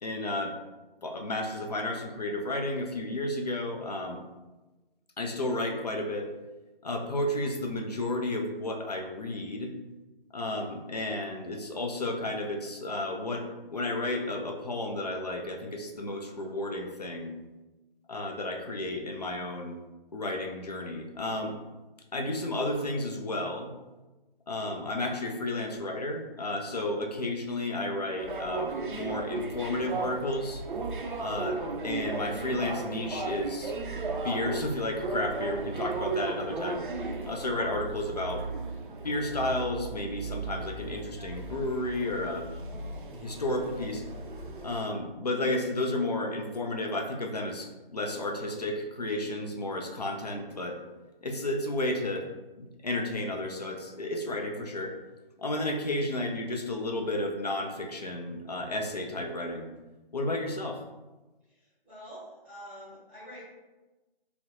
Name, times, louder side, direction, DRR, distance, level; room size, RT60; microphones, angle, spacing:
voice 1, 0.0-0.6 1.0-4.2 5.2-6.3 6.8-9.7 10.3-17.4 18.1-19.7 20.1-21.6 22.1-23.7 24.5-30.6 31.2-33.7 34.2-36.8 37.3-38.5 39.0-42.5 43.1-44.0 44.6-50.8 51.2-52.3 52.6-55.0 55.4-59.7 60.1-60.8, left 1 dB, 45° left, 3 dB, 0.4 m, -32 dB
sound 1, 28.2-44.8, right 3 dB, 60° right, 0.4 m, -36 dB
voice 2, 61.4-63.5, equal, 10° left, -14 dB, 1.5 m, -47 dB
4.2 x 2.0 x 2.6 m, 1.1 s
figure-of-eight pair, 160°, 30 cm